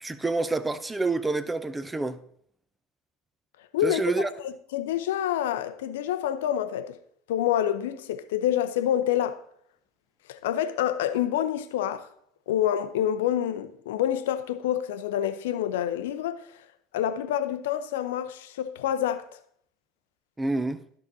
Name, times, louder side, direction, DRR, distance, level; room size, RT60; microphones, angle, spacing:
voice 1, 0.0-2.2 3.8-4.3 20.4-20.8, right 3 dB, 10° right, 0.6 m, -28 dB
voice 2, 3.7-7.0 7.3-9.4 10.3-12.1 12.5-16.5 16.9-19.3, left 11 dB, 65° left, 0.6 m, -27 dB
13.5 x 5.9 x 2.7 m
figure-of-eight pair, 70°, 0 cm